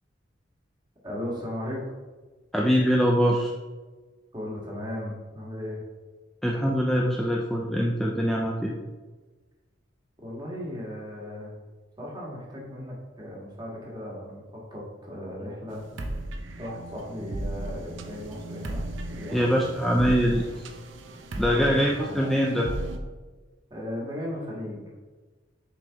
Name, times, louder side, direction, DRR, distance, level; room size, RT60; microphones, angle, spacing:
voice 1, 1.0-1.8 4.3-5.8 10.2-11.5 12.0-16.2 16.6-19.5 21.4-22.4 23.7-24.9, left 1 dB, 25° right, -3 dB, 1.6 m, -37 dB
voice 2, 2.5-3.5 6.4-8.7 19.3-20.7 21.4-22.7, equal, ahead, -1 dB, 0.4 m, -23 dB
sound 1, 15.7-23.0, right 1 dB, 85° right, 0.7 m, -36 dB
6.7 x 5.2 x 3.6 m, 1.3 s
head